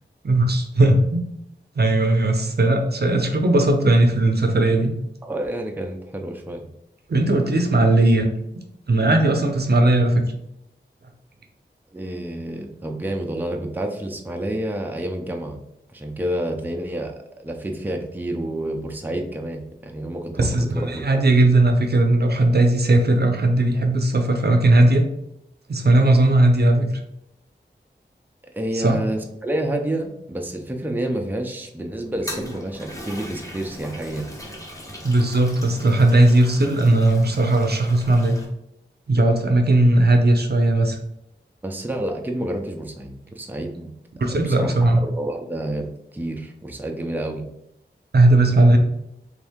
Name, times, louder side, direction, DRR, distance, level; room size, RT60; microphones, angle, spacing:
voice 1, 0.2-1.2 1.8-4.9 7.1-8.3 8.9-10.2 20.4-25.0 25.7-26.9 28.7-29.0 35.0-38.4 39.1-41.0 44.2-45.0 48.1-48.8, right 2 dB, 60° right, 4 dB, 0.6 m, -17 dB
voice 2, 5.2-6.6 11.9-15.6 15.9-21.3 28.6-34.2 41.6-43.9 44.3-45.9 46.1-47.4, right 1 dB, 10° right, 2 dB, 0.5 m, -29 dB
Toilet flush, 32.0-38.5, equal, 15° left, 1.1 m, -38 dB
3.5 x 2.6 x 3.5 m, 0.79 s
wide cardioid pair, 55°, 19 cm